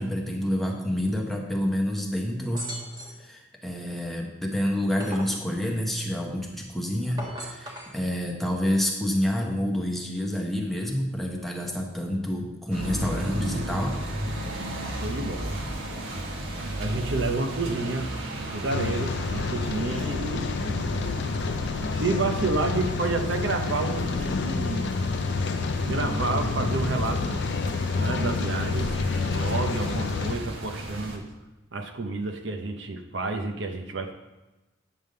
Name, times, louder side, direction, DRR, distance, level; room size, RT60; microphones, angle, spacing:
voice 1, 0.0-2.7 3.2-14.0, equal, ahead, 0 dB, 1.0 m, -28 dB
sound 1, 2.5-3.3 4.6-5.4 7.0-8.0, equal, 20° right, 1.2 m, -38 dB
sound 2, 12.7-31.2, right 1 dB, 80° right, 1.3 m, -34 dB
voice 2, 14.7-15.6 16.8-20.8 21.8-24.9 25.8-27.4 28.0-28.9 29.2-31.2 31.7-34.1, right 3 dB, 65° right, 5 dB, 0.8 m, -30 dB
Rain, 18.7-30.4, left 4 dB, 60° left, 0.4 m, -29 dB
9.4 x 3.5 x 6.6 m, 1.1 s
head